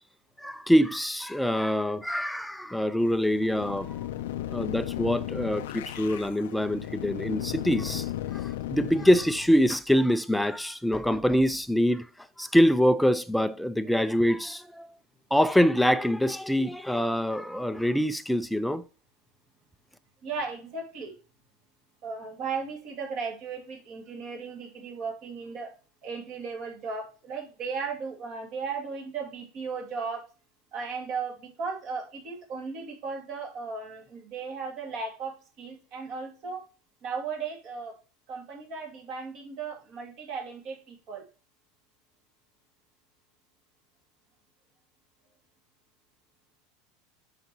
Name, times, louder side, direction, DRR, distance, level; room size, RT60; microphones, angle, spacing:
voice 1, 0.4-3.9 4.5-12.1 12.4-14.9 15.3-18.8, equal, ahead, 0.4 m, -25 dB
sound 1, 3.0-9.7, left 13 dB, 90° left, 0.4 m, -35 dB
voice 2, 20.2-21.1 22.0-25.7 26.0-30.2 30.7-36.6 37.0-37.9 38.3-41.2, right 5 dB, 40° right, 2.3 m, -36 dB
7.8 x 5.7 x 3.0 m
supercardioid pair, 150°, 0 cm